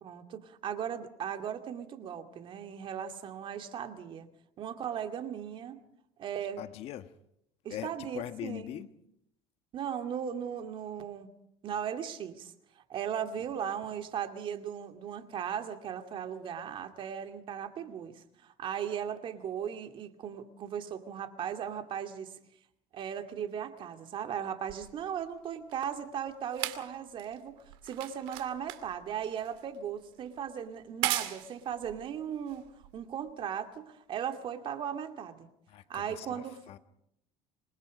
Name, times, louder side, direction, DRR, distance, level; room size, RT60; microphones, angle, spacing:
voice 1, 0.0-4.3 4.6-5.8 6.2-6.6 7.6-8.8 9.7-11.3 11.6-22.4 22.9-35.5 35.9-36.6, right 8 dB, 50° right, 2.3 m, -37 dB
voice 2, 6.6-7.1 7.7-8.9 35.7-36.8, left 12 dB, 60° left, 1.4 m, -41 dB
sound 1, 24.7-33.3 34.1-34.2, right 16 dB, 90° right, 2.4 m, -39 dB
27.0 x 21.0 x 5.2 m
cardioid pair, 115°, 11 cm